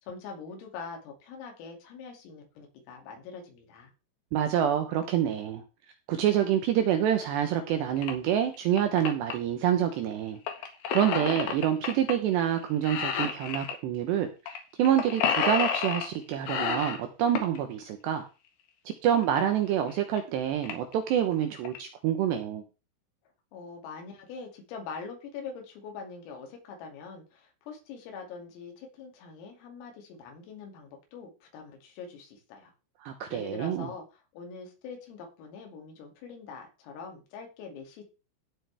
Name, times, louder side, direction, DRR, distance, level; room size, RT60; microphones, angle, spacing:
voice 1, 0.0-3.9 23.5-32.7 33.3-38.0, left 5 dB, 80° left, 2 dB, 5.2 m, -43 dB
voice 2, 4.3-5.6 6.1-10.4 10.9-18.3 19.0-22.6 33.0-33.9, right 10 dB, 75° right, 7 dB, 2.6 m, -27 dB
sound 1, 8.0-8.1 8.5-9.3 10.5-12.1 12.4-12.6 12.8-13.8 14.5-14.6 14.8-16.1 16.5-17.6 19.2-19.3 19.9-20.0 20.2-20.3 20.6-20.9 21.4-21.8, left 7 dB, 60° left, 3.0 m, -30 dB
16.5 x 7.8 x 3.4 m, 0.31 s
omnidirectional pair, 6.0 m